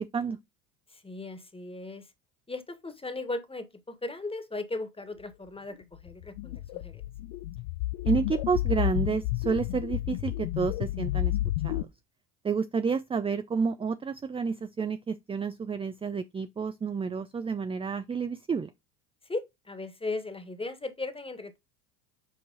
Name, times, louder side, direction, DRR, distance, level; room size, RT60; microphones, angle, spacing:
voice 1, 0.9-2.1 2.5-7.0 19.2-21.6, left 2 dB, 10° left, 1.6 m, -37 dB
sound 1, 6.1-11.8, left 16 dB, 60° left, 0.7 m, -31 dB
voice 2, 8.1-11.4 11.6-11.9 12.4-18.7, right 5 dB, 15° right, 0.4 m, -30 dB
7.7 x 4.6 x 4.0 m
hypercardioid pair, 80°, 47 cm